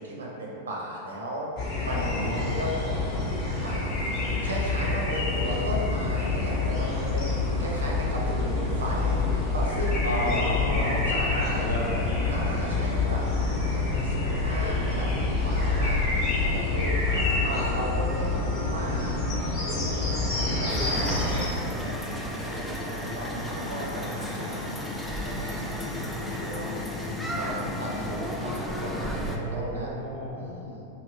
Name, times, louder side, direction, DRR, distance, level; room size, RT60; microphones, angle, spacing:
voice 1, 0.0-3.3 3.6-4.2 4.4-9.2 9.5-11.7 12.3-13.2 13.5-19.2 19.6-19.9 20.6-26.9 27.4-29.9 30.3-30.8, right 1 dB, 70° right, -3 dB, 0.6 m, -36 dB
sound 1, 1.6-21.4, left 3 dB, 40° left, 0.9 m, -27 dB
voice 2, 1.8-2.6 7.5-7.8 10.0-12.5 13.0-13.4 23.7-24.0 29.4-30.5, left 1 dB, 80° left, -7 dB, 0.7 m, -33 dB
sound 2, 20.7-29.4, left 1 dB, 5° left, 0.3 m, -33 dB
2.6 x 2.5 x 3.2 m, 2.7 s
figure-of-eight pair, 90°, 0 cm